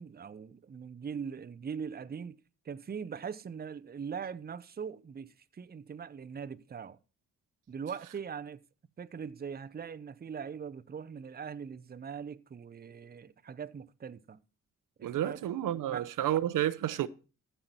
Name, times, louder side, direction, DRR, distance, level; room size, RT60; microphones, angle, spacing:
voice 1, 0.0-2.4 2.6-7.0 7.7-8.6 9.0-14.4 15.0-15.4 15.9-16.1, right 6 dB, 30° right, 0.7 m, -41 dB
voice 2, 15.0-17.1, right 12 dB, 80° right, 0.7 m, -30 dB
14.5 x 5.6 x 4.3 m
cardioid pair, 85°, 32 cm